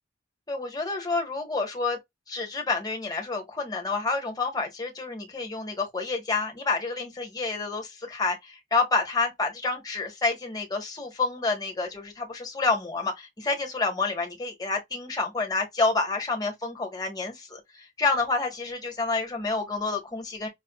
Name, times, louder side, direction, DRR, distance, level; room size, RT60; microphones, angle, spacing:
voice 1, 0.5-2.0 2.3-20.5, left 3 dB, 20° left, 1.2 m, -29 dB
5.6 x 2.3 x 2.3 m
head